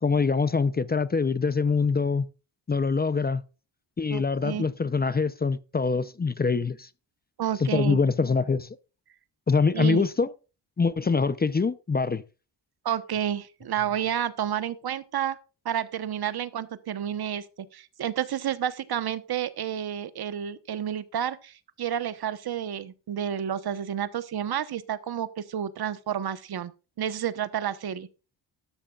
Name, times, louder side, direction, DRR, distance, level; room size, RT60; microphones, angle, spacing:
voice 1, 0.0-2.3 2.7-3.4 4.0-6.9 7.6-8.8 9.5-10.3 10.8-12.2, left 4 dB, 20° left, 0.6 m, -24 dB
voice 2, 4.1-4.6 7.4-8.0 9.7-10.0 12.8-15.4 15.6-17.4 17.7-26.7 27.0-28.1, right 9 dB, 60° right, 1.2 m, -30 dB
13.0 x 12.5 x 2.4 m
cardioid pair, 100°, 43 cm